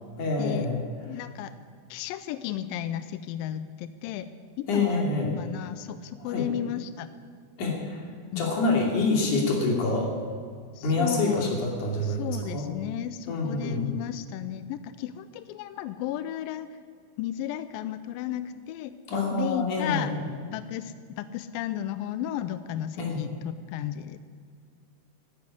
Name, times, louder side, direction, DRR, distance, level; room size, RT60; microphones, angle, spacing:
voice 1, 0.2-0.8 4.7-5.3 6.3-6.5 7.6-8.0 8.4-10.1 10.8-12.7 13.3-13.9 19.1-20.1 23.0-23.2, left 3 dB, 55° left, 0 dB, 3.9 m, -26 dB
voice 2, 1.0-1.5 1.9-4.3 4.6-7.1 8.3-8.5 10.8-11.5 12.0-16.7 17.2-19.0 19.3-20.1 20.4-24.2, left 11 dB, 85° left, 12 dB, 2.0 m, -34 dB
13.0 x 9.8 x 10.0 m, 2.1 s
omnidirectional pair, 4.6 m